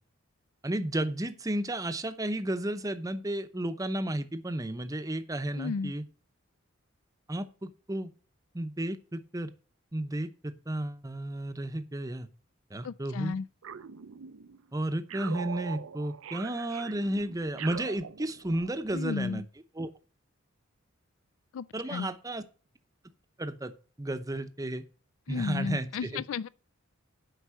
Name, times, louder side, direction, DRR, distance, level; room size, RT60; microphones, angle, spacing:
voice 1, 0.6-6.0 7.3-8.1 8.5-9.5 9.9-12.3 12.7-13.4 14.7-19.4 19.8-19.9 21.7-22.4 23.4-23.7 24.0-24.8 25.3-26.2, right 1 dB, 15° right, 0.7 m, -33 dB
voice 2, 5.5-5.9 12.8-13.5 18.9-19.4 21.5-22.1 25.3-26.5, left 5 dB, 75° left, 0.4 m, -34 dB
sound 1, 13.6-14.6 15.1-18.7, right 7 dB, 80° right, 0.5 m, -42 dB
8.2 x 5.3 x 7.5 m
head